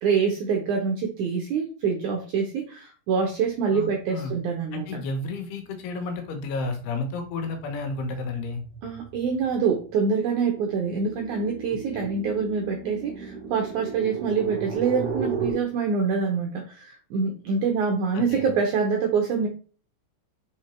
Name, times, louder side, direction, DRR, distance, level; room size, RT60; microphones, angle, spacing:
voice 1, 0.0-5.0 8.8-19.5, right 5 dB, 80° right, 3 dB, 1.7 m, -25 dB
voice 2, 3.7-4.3 4.7-8.6 11.9-12.1 18.1-18.5, left 3 dB, 80° left, 5 dB, 3.1 m, -32 dB
sound 1, 5.8-6.2 6.6-15.5, right 5 dB, 50° right, 2.0 m, -36 dB
5.7 x 4.5 x 4.3 m, 0.39 s
omnidirectional pair, 4.5 m